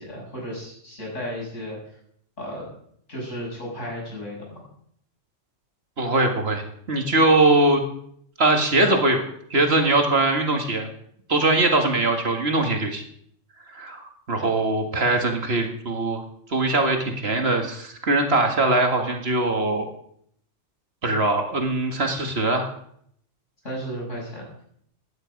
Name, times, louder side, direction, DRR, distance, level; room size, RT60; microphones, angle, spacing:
voice 1, 0.0-1.8 2.4-2.7 3.1-4.6 23.6-24.5, equal, 75° left, -3 dB, 7.1 m, -34 dB
voice 2, 6.0-6.6 6.9-7.8 8.4-9.2 9.5-10.9 11.3-13.0 13.7-16.2 16.5-19.9 21.0-22.7, right 2 dB, 55° right, 4 dB, 2.1 m, -21 dB
16.5 x 11.0 x 5.3 m, 0.66 s
omnidirectional pair, 1.3 m